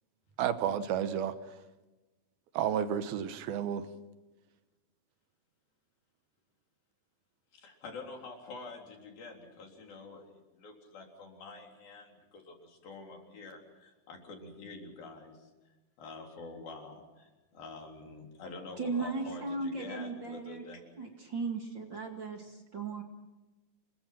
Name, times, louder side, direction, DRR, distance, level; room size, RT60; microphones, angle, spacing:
voice 1, 0.4-1.3 2.5-3.8, right 9 dB, 80° right, 11 dB, 2.9 m, -31 dB
voice 2, 7.5-15.5 16.0-21.2, left 3 dB, 70° left, 1 dB, 5.5 m, -47 dB
voice 3, 18.8-20.6 21.0-23.0, right 3 dB, 35° right, 2 dB, 2.4 m, -36 dB
28.0 x 22.5 x 6.0 m, 1.1 s
omnidirectional pair, 4.3 m